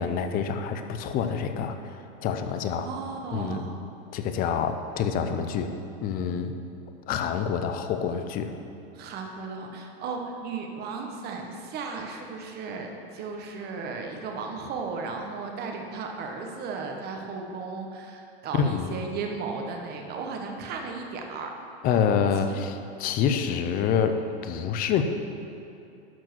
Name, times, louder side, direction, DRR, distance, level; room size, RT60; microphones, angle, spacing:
voice 1, 0.0-1.9 2.2-2.9 3.3-3.6 4.1-5.7 6.0-6.5 7.1-8.5 18.5-18.9 21.8-25.0, left 7 dB, 25° left, 7 dB, 0.6 m, -27 dB
voice 2, 2.8-3.8 8.9-21.5 22.4-22.6, right 4 dB, 30° right, 2 dB, 1.2 m, -35 dB
12.0 x 4.6 x 6.1 m, 2.6 s
supercardioid pair, 140°, 32 cm